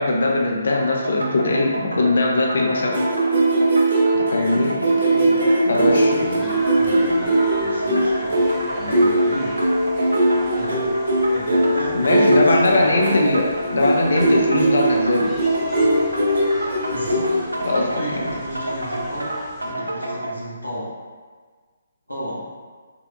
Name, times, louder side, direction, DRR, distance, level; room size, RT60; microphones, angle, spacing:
voice 1, 0.0-2.9 4.1-4.7 5.7-6.2 11.9-15.3 17.6-18.3, left 2 dB, 60° left, -1 dB, 0.5 m, -20 dB
sound 1, 0.7-20.4, right 1 dB, 80° right, 0.5 m, -30 dB
sound 2, 2.9-17.7, right 1 dB, 50° right, 0.9 m, -20 dB
voice 2, 4.3-9.5 10.5-12.8 16.9-17.4 17.9-19.3 19.6-20.9 22.1-22.5, equal, 85° left, -7 dB, 1.2 m, -33 dB
sound 3, 6.1-19.7, equal, 10° left, 0.4 m, -39 dB
3.5 x 3.1 x 2.3 m, 1.5 s
figure-of-eight pair, 135°, 0 cm